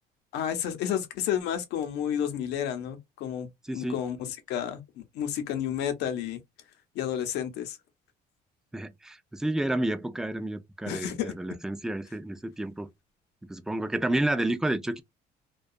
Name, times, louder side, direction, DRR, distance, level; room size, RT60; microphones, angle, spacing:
voice 1, 0.3-6.4 6.9-7.8 10.9-11.3, left 9 dB, 85° left, 0.7 m, -31 dB
voice 2, 3.7-4.0 8.7-12.9 13.4-15.0, right 1 dB, 5° right, 0.3 m, -30 dB
2.3 x 2.3 x 2.5 m
cardioid pair, 110°, 17 cm